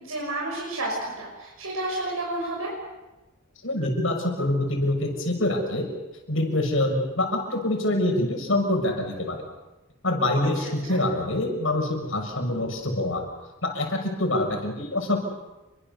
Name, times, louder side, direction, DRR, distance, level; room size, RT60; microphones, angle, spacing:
voice 1, 0.0-2.7 10.9-11.0, right 1 dB, 80° right, -2 dB, 6.5 m, -31 dB
voice 2, 3.6-5.9 6.3-9.4 10.0-13.2 13.6-15.2, left 1 dB, 65° left, 3 dB, 6.4 m, -25 dB
29.0 x 24.0 x 6.9 m, 1.1 s
head